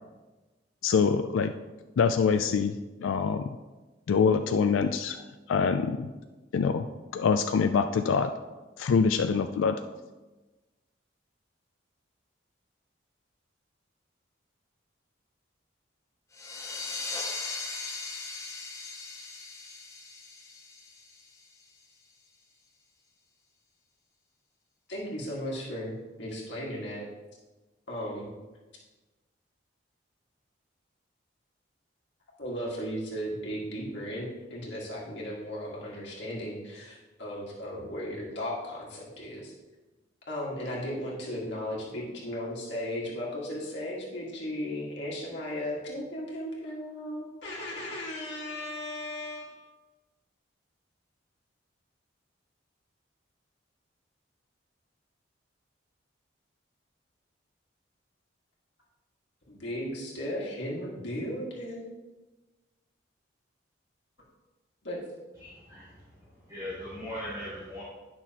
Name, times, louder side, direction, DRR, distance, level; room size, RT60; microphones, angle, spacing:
voice 1, 0.8-1.5 2.0-2.7 3.0-3.5 4.1-5.2 5.5-6.1 6.5-6.9 7.1-8.3 8.8-9.8, left 5 dB, 90° left, 7 dB, 0.4 m, -24 dB
sound 1, 16.3-21.6, left 3 dB, 15° left, 0.7 m, -39 dB
voice 2, 24.9-27.1 27.9-28.4 32.4-39.5 40.3-49.5 59.5-61.8 64.8-65.0, equal, 65° left, -4 dB, 1.8 m, -36 dB
voice 3, 65.4-65.8 66.5-67.8, left 1 dB, 20° right, -12 dB, 2.5 m, -38 dB
11.0 x 6.1 x 2.9 m, 1.2 s
head